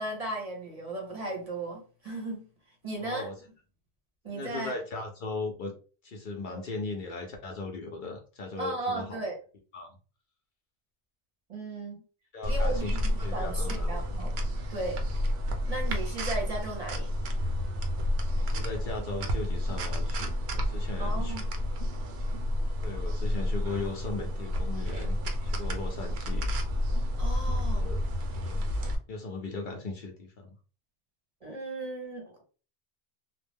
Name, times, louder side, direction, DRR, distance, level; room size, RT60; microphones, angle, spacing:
voice 1, 0.0-2.4 2.8-3.3 4.2-4.7 6.5-6.6 8.6-9.4 11.5-12.0 12.4-14.3 14.7-15.0 15.7-17.1 21.0-21.5 27.2-27.9 31.4-32.4, right 2 dB, 40° right, 0 dB, 0.8 m, -36 dB
voice 2, 3.0-3.3 4.3-5.7 6.0-9.3 9.7-10.0 12.3-14.0 18.3-21.4 22.8-25.2 25.4-26.5 27.5-28.0 28.4-28.6 29.1-30.6, left 3 dB, 60° left, 2 dB, 0.7 m, -38 dB
sound 1, 12.4-28.9, left 1 dB, 80° right, 0.8 m, -30 dB
2.4 x 2.1 x 3.3 m, 0.36 s
omnidirectional pair, 1.0 m